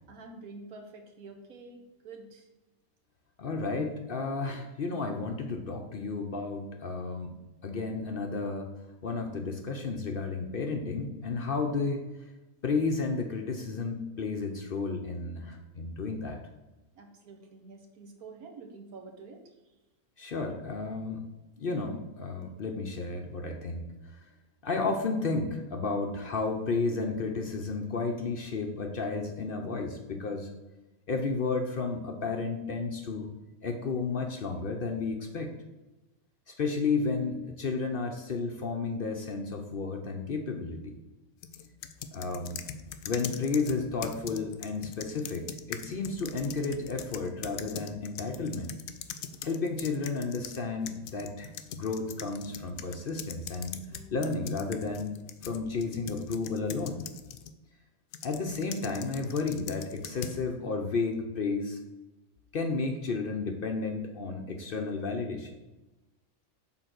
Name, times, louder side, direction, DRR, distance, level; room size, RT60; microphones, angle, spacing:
voice 1, 0.0-2.5 11.6-11.9 17.0-19.4, right 3 dB, 85° right, 4 dB, 1.6 m, -48 dB
voice 2, 3.4-7.3 7.6-8.7 9.0-12.0 12.6-16.4 20.2-21.2 21.6-23.9 24.6-30.5 31.1-33.3 33.6-35.5 36.5-41.0 42.1-42.6 43.0-48.7 49.4-57.0 58.2-61.8 62.5-65.6, left 4 dB, 50° left, 3 dB, 0.7 m, -32 dB
sound 1, 41.4-50.6 50.9-57.5 58.1-60.4, left 8 dB, 75° left, 1.0 m, -42 dB
6.6 x 3.8 x 6.0 m, 1.1 s
omnidirectional pair, 1.5 m